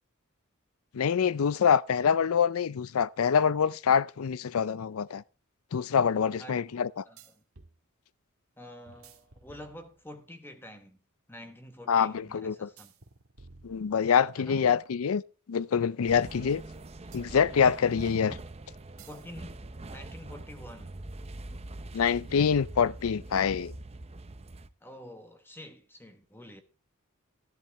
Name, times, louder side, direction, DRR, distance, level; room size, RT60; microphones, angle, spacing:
voice 1, 0.9-5.2 5.7-7.0 11.9-12.7 13.6-15.2 15.5-16.6 17.1-18.4 21.9-23.7, left 7 dB, 80° left, 0.5 m, -25 dB
sound 1, 4.7-4.8 7.2-7.8 8.9-10.2 12.8-14.5 17.1-18.1 19.0-19.3 19.6-21.0, right 3 dB, 85° right, 1.6 m, -55 dB
voice 2, 7.0-7.4 8.6-11.0 11.3-12.9 14.4-14.6 19.1-20.9 24.8-26.6, left 1 dB, 10° left, 1.1 m, -48 dB
sound 2, 16.1-24.7, right 2 dB, 30° right, 0.7 m, -44 dB
13.5 x 10.5 x 3.4 m
head